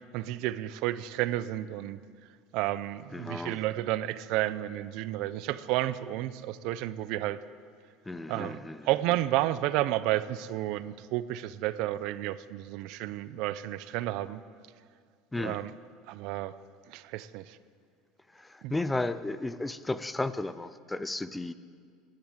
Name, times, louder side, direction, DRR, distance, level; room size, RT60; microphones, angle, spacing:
voice 1, 0.1-2.0 2.5-7.4 8.3-14.4 15.4-15.7 16.1-16.6 16.9-17.6 18.6-18.7, right 15 dB, 60° right, 15 dB, 0.5 m, -31 dB
voice 2, 3.1-3.6 8.1-8.9 15.3-15.6 18.3-21.5, left 2 dB, 10° left, 14 dB, 0.4 m, -34 dB
15.5 x 10.5 x 7.9 m, 2.1 s
cardioid pair, 150°, 0 cm